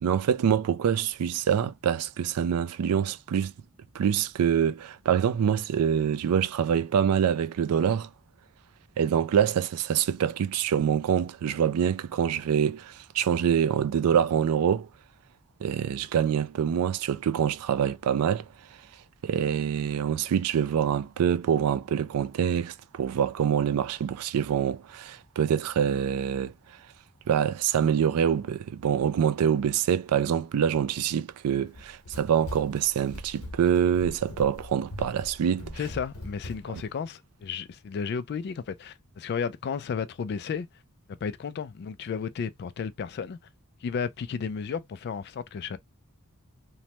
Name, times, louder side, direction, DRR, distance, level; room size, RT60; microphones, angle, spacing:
voice 1, 0.0-3.5 3.9-8.1 9.0-14.9 15.6-18.4 19.2-26.5 27.3-35.7 36.7-36.8, right 8 dB, 80° right, 0.3 m, -25 dB
Run, 31.7-36.9, left 1 dB, 75° left, 0.9 m, -41 dB
voice 2, 35.8-40.7 41.1-43.4 43.8-45.8, left 6 dB, 45° left, 0.3 m, -33 dB
3.1 x 2.1 x 2.8 m
head